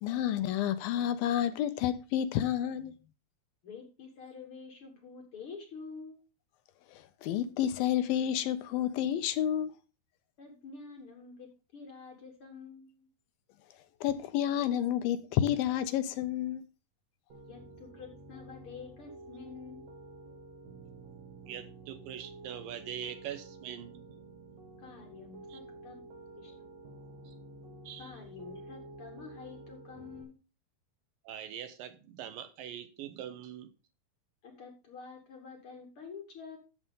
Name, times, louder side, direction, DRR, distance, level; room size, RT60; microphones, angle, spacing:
voice 1, 0.0-2.9 7.2-9.7 14.0-16.6, left 10 dB, 80° left, 2.4 m, -30 dB
voice 2, 3.6-6.2 10.4-13.1 17.5-19.8 24.8-26.0 26.4-26.7 28.0-30.4 34.4-36.6, left 5 dB, 50° left, 1.7 m, -48 dB
Piano, 17.3-30.2, right 2 dB, 55° right, 2.1 m, -50 dB
voice 3, 21.5-24.1 25.5-25.6 27.3-27.4 27.8-28.2 31.2-33.7, right 10 dB, 75° right, 2.3 m, -43 dB
12.5 x 7.3 x 3.7 m
omnidirectional pair, 4.4 m